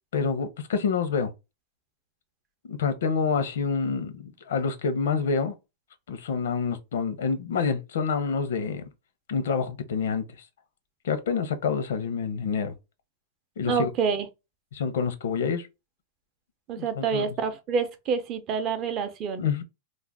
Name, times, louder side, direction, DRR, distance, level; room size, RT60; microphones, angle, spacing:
voice 1, 0.1-1.3 2.7-5.5 6.1-8.8 9.3-10.2 11.0-12.7 13.6-13.9 14.7-15.7 16.8-17.2 19.4-19.6, left 5 dB, 85° left, 0.6 m, -27 dB
voice 2, 13.6-14.3 16.7-19.4, right 6 dB, 30° right, 0.5 m, -27 dB
2.4 x 2.1 x 3.3 m
supercardioid pair, 160°, 0 cm